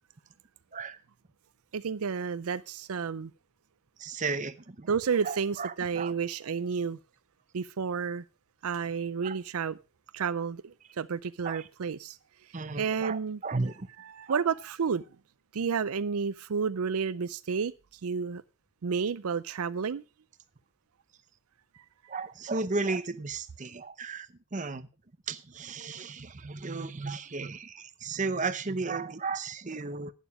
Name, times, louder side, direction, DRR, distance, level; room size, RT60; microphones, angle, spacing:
voice 1, 1.7-3.3 4.9-7.0 7.5-8.2 8.6-9.8 10.1-12.2 12.8-13.4 14.0-15.0 15.5-17.7 18.0-18.4 18.8-20.0, right 6 dB, 80° right, 0.5 m, -31 dB
voice 2, 4.0-4.9 5.2-6.1 9.2-9.3 11.4-11.7 12.5-13.9 14.3-14.4 22.1-24.3 24.5-24.9 25.3-30.1, right 4 dB, 35° right, 0.7 m, -34 dB
11.0 x 9.2 x 4.8 m
head